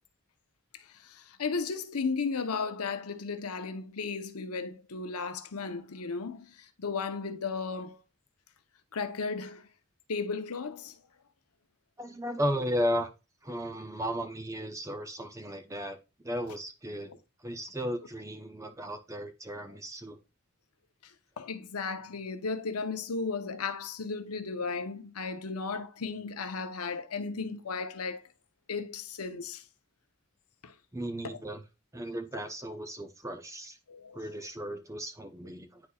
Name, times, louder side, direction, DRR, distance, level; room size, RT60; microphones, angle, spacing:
voice 1, 1.4-6.5 6.8-8.0 8.9-9.6 10.1-10.9 17.1-17.2 21.4-28.2 28.7-29.6 30.6-30.7 31.2-31.4 33.9-34.2, left 4 dB, 85° left, 0.8 m, -35 dB
voice 2, 12.0-13.1 13.4-16.0 16.2-17.1 17.4-20.2 30.9-31.6 31.9-33.8 34.1-35.8, equal, 15° right, 0.7 m, -35 dB
9.8 x 4.2 x 2.3 m
head